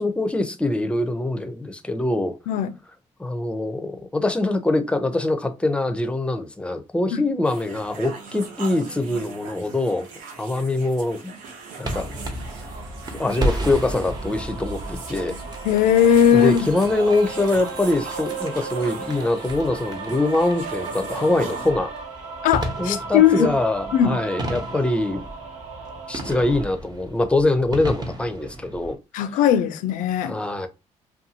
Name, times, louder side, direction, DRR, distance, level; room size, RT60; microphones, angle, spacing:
voice 1, 0.0-2.3 3.2-10.1 10.4-11.3 11.8-12.1 13.2-15.4 16.3-21.9 22.8-25.2 26.1-29.0 30.2-30.7, left 2 dB, 10° left, 0.5 m, -23 dB
sound 1, 7.4-21.7, right 4 dB, 90° right, 0.7 m, -40 dB
sound 2, 11.8-28.9, right 1 dB, 30° right, 0.9 m, -34 dB
sound 3, 13.1-26.6, right 4 dB, 55° right, 1.1 m, -36 dB
voice 2, 15.6-16.6 22.4-23.5 23.9-24.2 29.1-30.3, left 9 dB, 85° left, 0.4 m, -18 dB
2.6 x 2.3 x 2.7 m
cardioid pair, 75°, 13 cm